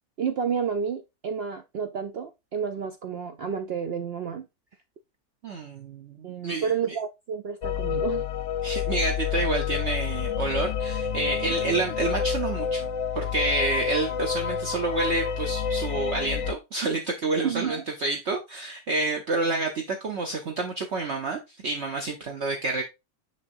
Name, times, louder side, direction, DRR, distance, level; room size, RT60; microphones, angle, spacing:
voice 1, 0.2-4.5 6.2-8.2 17.4-17.8, right 7 dB, 70° right, 0.6 m, -30 dB
voice 2, 5.4-6.9 8.6-12.9 13.2-22.8, right 2 dB, 55° right, 1.0 m, -29 dB
sound 1, 7.6-16.5, left 7 dB, 60° left, 0.9 m, -28 dB
6.4 x 5.9 x 2.6 m
omnidirectional pair, 1.6 m